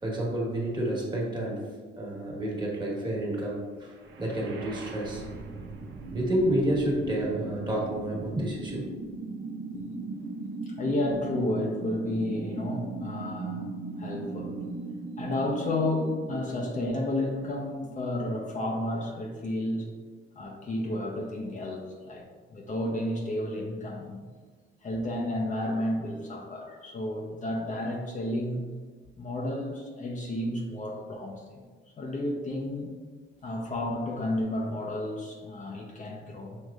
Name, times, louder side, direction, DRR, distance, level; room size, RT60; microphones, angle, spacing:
voice 1, 0.0-1.6 2.0-5.2 6.1-8.9, right 1 dB, 20° right, -3 dB, 1.4 m, -29 dB
sound 1, 3.9-17.9, right 3 dB, 65° right, 0.7 m, -38 dB
voice 2, 10.7-13.6 14.0-14.6 15.2-19.9 20.4-24.2 24.8-28.6 29.2-31.6 32.0-32.9 33.4-36.6, left 1 dB, 40° left, -1 dB, 0.7 m, -32 dB
6.3 x 3.0 x 2.4 m, 1.5 s
cardioid pair, 90°, 20 cm